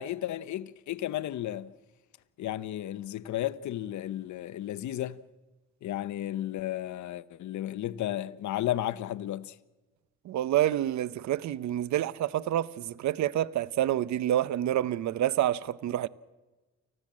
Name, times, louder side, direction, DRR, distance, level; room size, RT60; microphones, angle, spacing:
voice 1, 0.0-1.7 2.4-5.2 5.8-9.6, left 13 dB, 70° left, 0.9 m, -33 dB
voice 2, 10.3-16.1, right 12 dB, 70° right, 0.8 m, -28 dB
30.0 x 15.0 x 7.4 m
cardioid pair, 90°, 30 cm